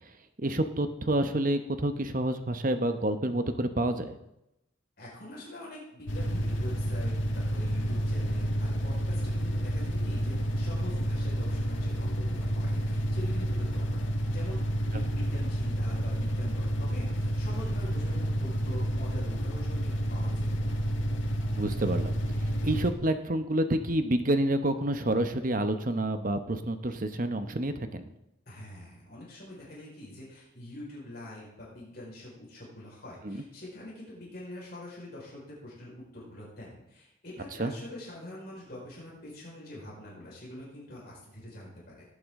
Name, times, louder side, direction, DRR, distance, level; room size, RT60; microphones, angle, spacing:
voice 1, 0.4-4.1 21.6-22.2 22.6-28.0 33.2-33.4 37.6-37.7, right 1 dB, 45° right, 8 dB, 0.9 m, -28 dB
voice 2, 5.0-14.0 14.3-20.5 28.5-42.0, left 1 dB, 50° left, -5 dB, 4.7 m, -45 dB
sound 1, 6.1-22.9, equal, 75° left, 1.4 m, -30 dB
18.0 x 8.5 x 3.7 m, 0.87 s
head